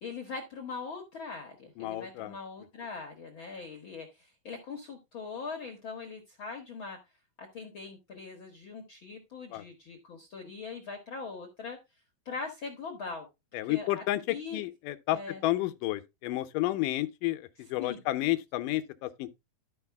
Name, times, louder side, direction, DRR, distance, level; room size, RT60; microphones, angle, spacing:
voice 1, 0.0-7.0 7.4-11.8 12.2-13.3 13.7-14.6 15.1-15.4 17.8-18.0, left 4 dB, 55° left, 1.4 m, -41 dB
voice 2, 1.8-2.4 9.5-9.6 13.5-15.2 15.4-19.3, left 16 dB, 75° left, 2.2 m, -31 dB
12.5 x 5.0 x 3.4 m
omnidirectional pair, 4.2 m